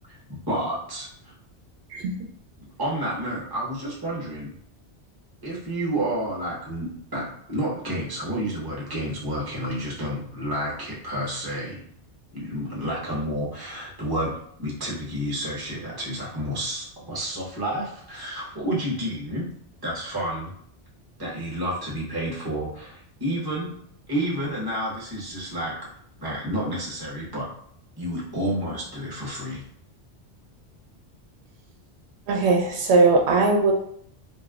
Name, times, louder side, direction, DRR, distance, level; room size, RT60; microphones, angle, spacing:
voice 1, 0.1-1.3 2.6-4.5 5.4-11.8 12.3-19.5 19.8-20.5 21.2-23.7 24.1-25.8 26.2-27.5 28.0-29.6, right 1 dB, 25° right, -4 dB, 0.8 m, -30 dB
voice 2, 32.3-33.7, right 3 dB, 80° right, 1 dB, 0.8 m, -19 dB
2.4 x 2.0 x 3.4 m, 0.65 s
omnidirectional pair, 1.1 m